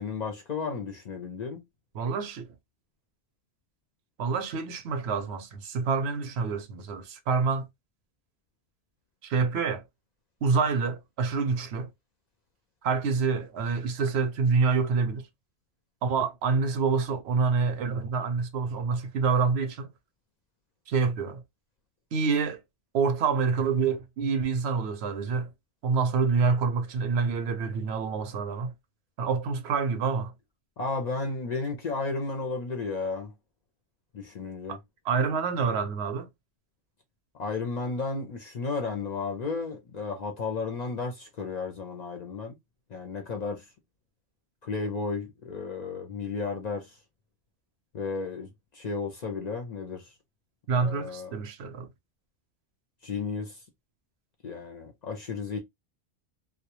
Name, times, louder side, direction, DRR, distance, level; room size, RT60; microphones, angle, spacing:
voice 1, 0.0-1.6 30.8-33.3 34.1-34.8 37.3-42.6 42.9-43.7 44.6-47.0 47.9-50.1 50.8-51.3 53.0-53.6 54.4-55.6, left 4 dB, 55° left, 0.5 m, -33 dB
voice 2, 1.9-2.5 4.2-7.7 9.2-9.8 10.4-11.9 12.8-15.2 16.0-19.9 20.9-21.4 22.1-22.6 22.9-25.5 25.8-28.7 29.2-30.3 34.7-34.8 35.1-36.3 50.7-51.9, right 5 dB, 75° right, 0.8 m, -27 dB
2.2 x 2.1 x 2.8 m
omnidirectional pair, 1.1 m